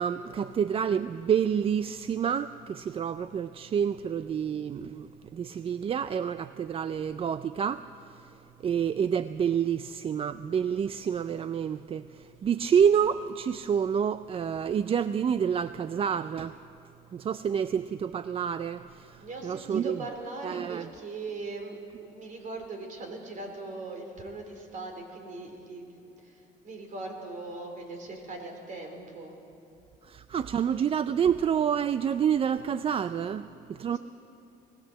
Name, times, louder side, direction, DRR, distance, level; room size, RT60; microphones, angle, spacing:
voice 1, 0.0-8.3 8.6-16.6 17.1-20.0 20.4-20.9 30.0-34.0, right 8 dB, 35° right, 13 dB, 0.4 m, -28 dB
voice 2, 19.2-29.4 33.8-34.0, right 3 dB, 50° right, 4 dB, 3.8 m, -40 dB
20.5 x 17.0 x 7.8 m, 2.7 s
cardioid pair, 110°, 17 cm